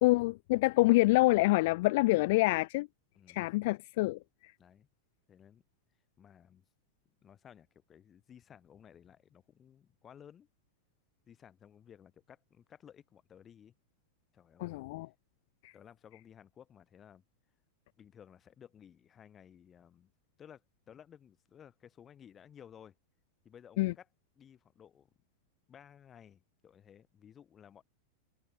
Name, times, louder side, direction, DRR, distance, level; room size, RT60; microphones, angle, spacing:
voice 1, 0.0-2.9 3.3-4.2 14.6-15.1 15.6-15.7 23.8-23.9, left 21 dB, 50° left, 0.6 m, -26 dB
voice 2, 5.3-5.6 6.2-6.7 7.2-10.5 11.3-13.7 14.3-14.8 15.7-17.2 18.0-20.1 20.4-22.9 23.4-24.1 24.4-25.1 25.7-27.8, left 8 dB, 25° left, 5.7 m, -56 dB
figure-of-eight pair, 90°, 0 cm